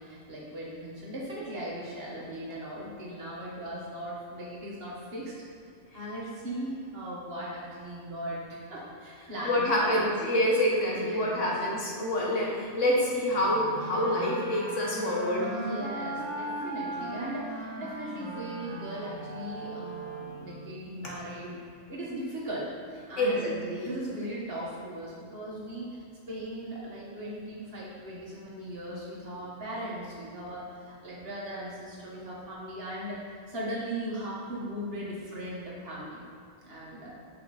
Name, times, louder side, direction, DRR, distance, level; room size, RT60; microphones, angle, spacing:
voice 1, 0.0-5.3 5.9-10.1 10.9-11.5 15.4-21.6 21.9-22.7 23.1-23.6 23.8-36.2 36.6-37.1, right 1 dB, 50° right, -6 dB, 2.0 m, -38 dB
voice 2, 9.5-15.5 23.2-23.9, left 1 dB, 75° left, -4 dB, 1.9 m, -27 dB
sound 1, 13.3-20.8, right 2 dB, 80° right, 1.5 m, -38 dB
8.6 x 6.1 x 4.3 m, 2.3 s
omnidirectional pair, 1.3 m